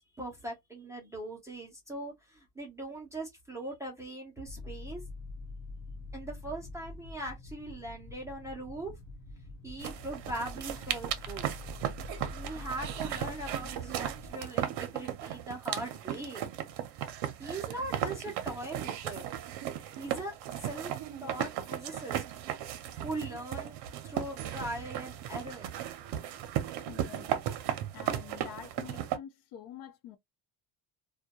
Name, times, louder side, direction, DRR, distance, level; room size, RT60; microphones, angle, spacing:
voice 1, 0.2-5.0 6.1-9.0 9.6-11.5 12.3-16.5 17.4-19.2 20.0-20.3 20.6-20.9 21.2-22.2 23.0-23.8 24.0-25.7, right 1 dB, 5° right, 0.4 m, -40 dB
sound 1, 4.5-14.3, left 2 dB, 45° left, 1.0 m, -45 dB
sound 2, 9.8-29.2, right 11 dB, 65° right, 0.6 m, -36 dB
voice 2, 26.9-27.3 27.9-30.2, left 10 dB, 80° left, 0.7 m, -47 dB
2.2 x 2.2 x 2.7 m
cardioid pair, 180°, 45 cm